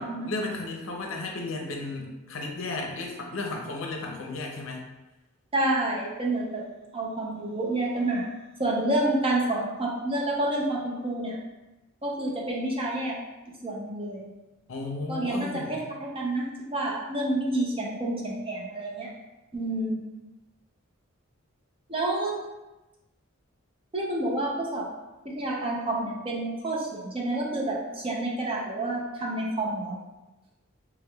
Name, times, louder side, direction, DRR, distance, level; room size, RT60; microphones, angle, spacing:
voice 1, 0.0-4.8 14.7-15.9, left 2 dB, 65° left, 1 dB, 0.6 m, -34 dB
voice 2, 5.5-6.6 6.9-8.2 8.6-11.4 12.0-13.2 13.6-14.3 15.1-19.1 19.5-20.0 21.9-22.4 23.9-24.9 25.2-30.0, right 1 dB, 25° right, -2 dB, 0.6 m, -29 dB
3.3 x 3.3 x 2.3 m, 1.1 s
head